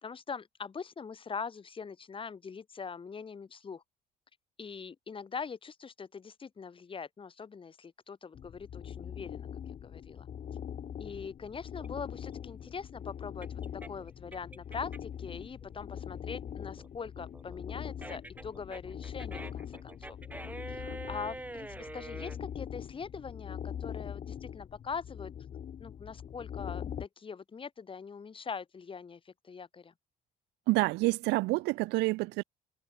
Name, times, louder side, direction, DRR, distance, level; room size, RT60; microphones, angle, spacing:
voice 1, 0.0-3.8 4.6-9.5 9.8-10.3 11.0-13.5 13.9-20.2 20.7-25.3 25.8-29.9, left 5 dB, 30° left, 3.5 m, -42 dB
sound 1, 8.3-27.1, left 9 dB, 50° left, 3.1 m, -42 dB
sound 2, 11.8-15.2 15.6-22.4, right 2 dB, 10° right, 3.3 m, -46 dB
voice 2, 30.7-32.4, right 23 dB, 85° right, 0.5 m, -28 dB
cardioid pair, 110°, 17 cm